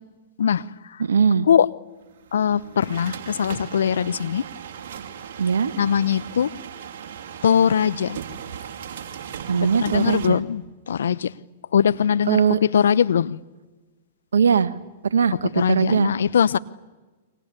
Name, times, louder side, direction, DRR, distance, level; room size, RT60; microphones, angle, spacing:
voice 1, 0.4-1.0 1.5-1.7 2.3-4.4 5.8-6.5 7.4-8.2 9.6-11.4 11.7-13.4 15.6-16.6, left 8 dB, 75° left, 0.8 m, -21 dB
voice 2, 1.0-1.5 5.4-5.7 9.5-10.4 12.3-12.6 14.3-14.7 15.0-16.1, right 6 dB, 80° right, 1.4 m, -20 dB
sound 1, 2.1-10.3, right 8 dB, 60° right, 2.9 m, -37 dB
29.5 x 24.0 x 8.4 m
hypercardioid pair, 110°, 0 cm